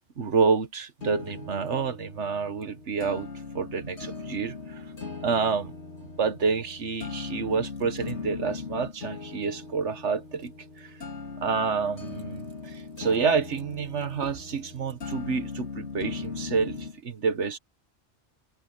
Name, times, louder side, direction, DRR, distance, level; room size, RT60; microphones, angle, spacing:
voice 1, 0.2-3.3 3.5-4.8 5.2-5.7 6.2-10.5 10.8-10.9 11.4-17.6, right 5 dB, 80° right, 1.6 m, -28 dB
sound 1, 1.0-17.0, left 4 dB, 75° left, 3.2 m, -39 dB
omnidirectional pair, 1.2 m